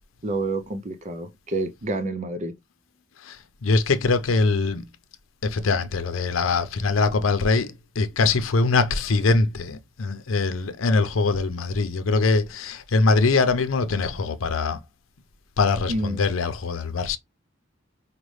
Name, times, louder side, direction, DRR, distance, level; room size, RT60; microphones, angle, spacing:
voice 1, 0.2-2.5 15.9-16.2, right 2 dB, 35° right, 0.5 m, -28 dB
voice 2, 3.6-4.8 5.4-14.8 15.6-17.2, left 3 dB, 90° left, 0.6 m, -22 dB
5.1 x 2.2 x 3.1 m
head